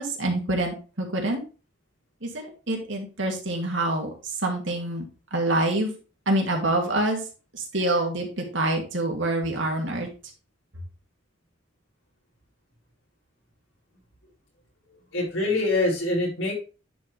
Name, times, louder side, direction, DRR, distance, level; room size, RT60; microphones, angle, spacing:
voice 1, 0.0-1.4 2.2-4.1 4.4-5.0 5.3-5.9 6.3-7.2 7.5-10.1, right 1 dB, 70° right, 1 dB, 2.4 m, -26 dB
voice 2, 15.1-16.5, left 2 dB, 80° left, -3 dB, 4.5 m, -24 dB
10.0 x 4.8 x 3.4 m, 0.34 s
head